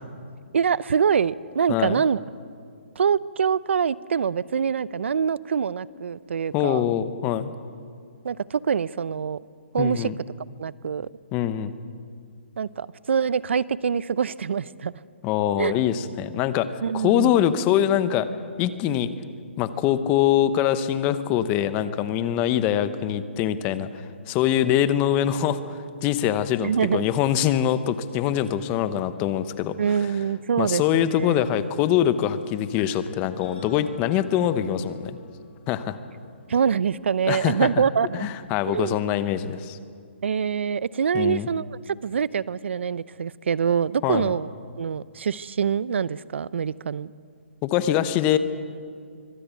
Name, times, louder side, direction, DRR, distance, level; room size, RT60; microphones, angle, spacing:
voice 1, 0.5-2.2 3.0-6.9 8.2-9.4 9.7-10.1 10.6-11.1 12.6-15.0 15.6-15.7 16.8-17.3 26.6-27.1 29.8-31.3 36.5-38.3 38.7-39.0 40.2-44.5 44.8-47.1, right 7 dB, 70° right, 20 dB, 0.6 m, -25 dB
voice 2, 1.7-2.0 6.5-7.5 9.8-10.2 11.3-11.8 15.2-18.3 18.6-19.1 19.6-29.8 30.6-35.2 35.7-36.0 37.3-37.7 38.1-39.8 41.1-41.5 44.0-44.4 47.6-48.4, left 10 dB, 20° left, 13 dB, 0.9 m, -23 dB
sound 1, 32.8-38.4, left 2 dB, 55° left, 6.6 m, -47 dB
24.5 x 17.0 x 8.4 m, 2.2 s
hypercardioid pair, 160°, 7 cm